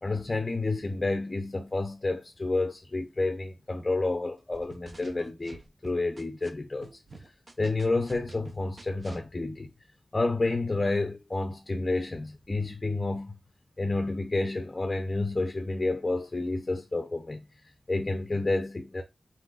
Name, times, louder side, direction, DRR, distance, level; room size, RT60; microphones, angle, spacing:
voice 1, 0.0-7.0 7.6-9.7 10.1-13.4 13.8-19.0, left 2 dB, 30° left, 0.5 m, -30 dB
sound 1, 4.5-6.5 6.8-9.2, right 3 dB, 50° right, 0.8 m, -48 dB
4.2 x 3.9 x 2.3 m
wide cardioid pair, 100°, 0 cm